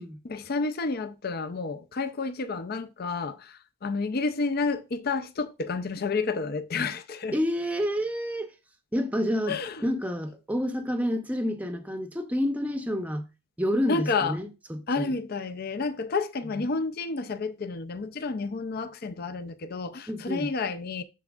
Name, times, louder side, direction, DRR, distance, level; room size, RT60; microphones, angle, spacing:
voice 1, 0.2-7.4 9.5-9.9 13.9-14.4 14.9-21.0, left 4 dB, 45° left, 0.5 m, -30 dB
voice 2, 7.3-8.5 8.9-9.6 9.8-13.3 13.6-15.1 20.1-20.5, equal, 5° right, 0.6 m, -29 dB
13.0 x 4.4 x 2.4 m
head